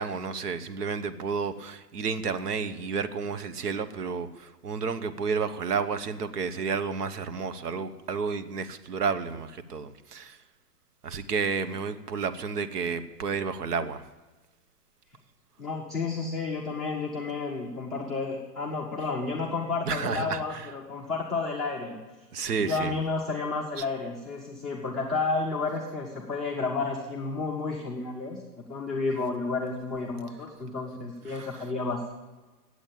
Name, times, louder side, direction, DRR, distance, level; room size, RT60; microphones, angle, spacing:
voice 1, 0.0-10.4 11.0-14.0 19.9-20.7 22.3-22.9 31.3-31.5, right 5 dB, 70° right, 11 dB, 1.0 m, -31 dB
voice 2, 15.6-22.0 22.6-28.4 28.7-32.1, left 3 dB, ahead, -5 dB, 0.4 m, -31 dB
8.8 x 8.0 x 8.6 m, 1.2 s
hypercardioid pair, 125°, 49 cm